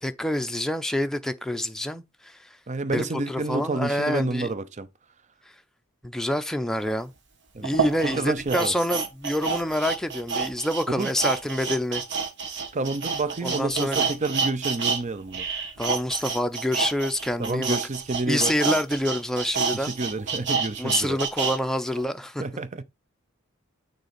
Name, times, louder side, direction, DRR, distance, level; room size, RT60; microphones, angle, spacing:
voice 1, 0.0-2.4 2.9-4.5 6.0-7.1 7.6-12.0 13.4-14.0 15.8-17.8 18.3-19.9 20.8-22.4, left 1 dB, ahead, 0.6 m, -27 dB
voice 2, 2.7-4.9 7.5-7.7 8.0-8.7 11.0-11.1 12.7-15.5 17.4-18.5 19.7-21.2 22.4-22.8, right 3 dB, 35° right, 0.7 m, -29 dB
sound 1, 6.9-7.0 7.6-15.0 15.3-21.6 22.0-22.1, right 5 dB, 60° right, 1.7 m, -28 dB
6.6 x 4.0 x 5.2 m
head